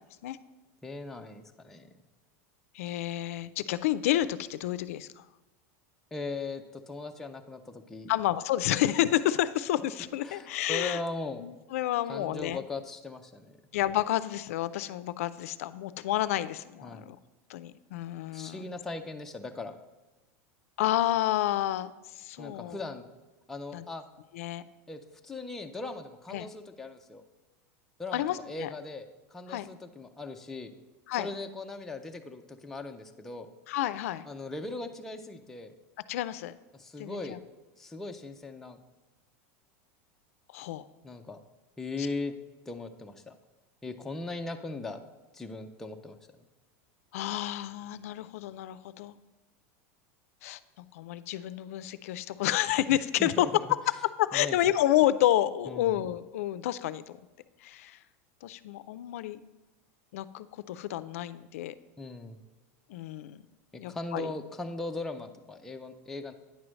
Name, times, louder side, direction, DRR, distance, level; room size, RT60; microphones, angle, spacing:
voice 1, 0.8-1.9 6.1-8.1 10.2-11.4 12.1-13.6 16.8-17.1 18.3-19.8 22.4-23.1 23.5-24.0 24.9-27.2 28.0-29.1 29.3-30.7 31.2-33.5 34.3-35.7 36.7-37.4 37.8-38.8 41.0-41.4 41.8-42.4 42.7-43.4 43.8-45.0 45.3-46.5 53.2-53.5 54.3-54.6 55.7-56.0 62.0-62.4 63.7-66.3, left 2 dB, 5° left, 4 dB, 0.3 m, -39 dB
voice 2, 2.7-5.2 8.1-11.0 11.4-12.6 13.7-17.2 17.5-18.6 20.8-22.8 23.7-23.8 24.3-24.6 26.3-26.5 28.1-28.7 29.5-29.7 31.1-31.3 33.7-34.3 36.1-36.5 37.0-37.4 40.5-40.8 47.1-49.2 50.4-50.6 50.9-53.5 54.2-57.2 57.6-58.0 58.4-59.4 60.1-61.7 62.9-63.4 63.7-64.3, left 13 dB, 80° left, 14 dB, 0.4 m, -30 dB
9.3 x 3.2 x 6.1 m, 1.1 s
supercardioid pair, 170°, 8 cm